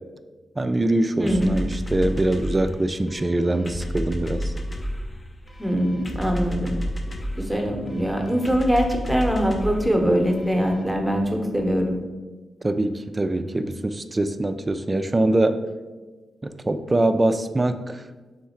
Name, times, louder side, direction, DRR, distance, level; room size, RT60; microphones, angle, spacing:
voice 1, 0.6-4.5 12.6-15.6 16.4-18.0, right 1 dB, 25° right, 9 dB, 0.3 m, -23 dB
voice 2, 1.2-1.6 5.6-6.8 7.4-12.0, equal, ahead, 2 dB, 0.8 m, -23 dB
sound 1, 1.3-10.8, equal, 30° left, 0.6 m, -32 dB
3.6 x 3.2 x 4.2 m, 1.3 s
cardioid pair, 65°, 0 cm